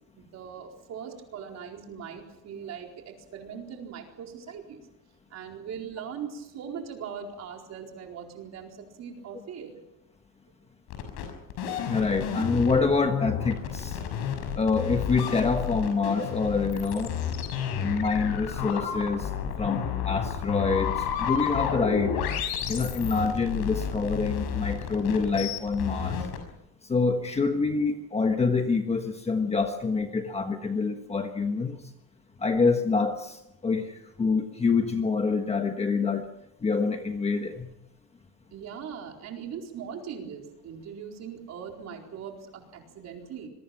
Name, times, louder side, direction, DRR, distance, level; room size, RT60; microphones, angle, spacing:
voice 1, 0.1-4.9 5.3-9.8 38.5-43.5, right 7 dB, 40° right, 2 dB, 4.4 m, -40 dB
sound 1, 10.9-26.4, left 8 dB, 65° left, 6.3 m, -31 dB
voice 2, 11.9-14.0 14.6-17.1 17.8-19.3 19.6-22.2 22.7-26.2 26.9-31.8 32.4-36.3 36.6-37.7, left 4 dB, 15° left, 5 dB, 1.3 m, -26 dB
26.5 x 22.5 x 5.9 m, 0.86 s
cardioid pair, 175°, 40 cm